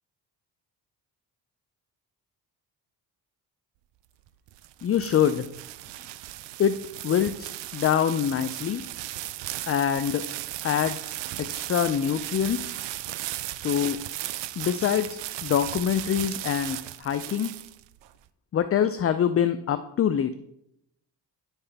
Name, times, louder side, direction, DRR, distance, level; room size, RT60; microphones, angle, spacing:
sound 1, 4.3-18.1, right 15 dB, 75° right, 0.5 m, -36 dB
voice 1, 4.8-5.5 6.6-6.8 7.0-8.8 9.7-10.3 10.6-12.8 13.5-14.0 14.6-17.5 18.5-20.4, left 9 dB, 35° left, 11 dB, 0.4 m, -25 dB
10.0 x 5.7 x 3.4 m, 0.78 s
cardioid pair, 80°, 43 cm